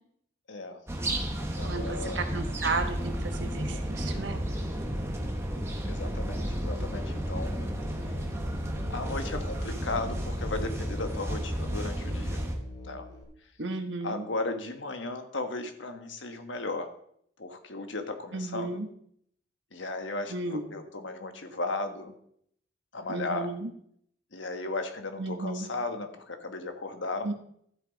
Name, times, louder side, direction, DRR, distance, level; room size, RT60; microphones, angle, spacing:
voice 1, 0.5-0.8 1.4-2.2 3.7-3.9 5.8-7.7 8.9-12.4 12.8-13.0 14.0-16.9 17.4-18.8 19.7-22.1 22.9-23.5 24.3-27.3, left 2 dB, 90° left, 6 dB, 1.4 m, -35 dB
sound 1, 0.9-12.6, equal, 15° right, 1.2 m, -32 dB
voice 2, 1.6-4.4 13.6-14.2 18.3-18.9 20.3-20.6 23.1-23.7 25.2-25.7 27.2-27.3, right 3 dB, 80° right, 5 dB, 1.4 m, -33 dB
Musical instrument, 6.5-13.2, left 2 dB, 20° left, 2.5 m, -46 dB
13.0 x 7.5 x 4.1 m, 0.68 s
head